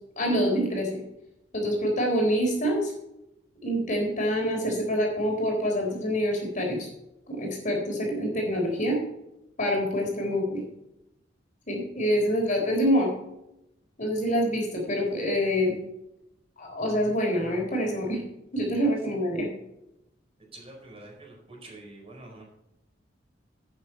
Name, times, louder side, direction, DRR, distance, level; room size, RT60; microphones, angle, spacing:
voice 1, 0.2-1.0 1.5-2.9 3.6-6.9 7.3-9.0 9.6-10.6 11.7-13.1 14.0-15.8 16.6-18.2 18.5-19.5, equal, 45° left, 0 dB, 3.7 m, -26 dB
voice 2, 20.5-22.4, right 2 dB, 30° right, -1 dB, 4.6 m, -46 dB
11.5 x 8.8 x 4.4 m, 0.85 s
head